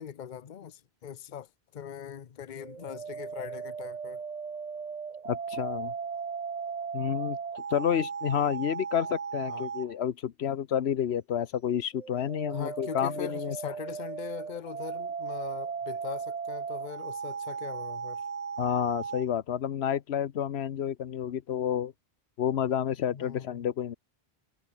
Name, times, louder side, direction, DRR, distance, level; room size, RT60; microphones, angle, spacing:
voice 1, 0.0-4.2 9.4-9.7 12.5-18.2 23.1-23.7, left 9 dB, 50° left, 0.9 m, -41 dB
sound 1, 2.6-9.9 11.9-19.2, right 6 dB, 40° right, 0.9 m, -37 dB
voice 2, 5.3-5.9 6.9-7.4 7.7-13.6 18.6-21.9 22.4-24.0, left 9 dB, 90° left, 1.1 m, -30 dB
omnidirectional pair, 1.1 m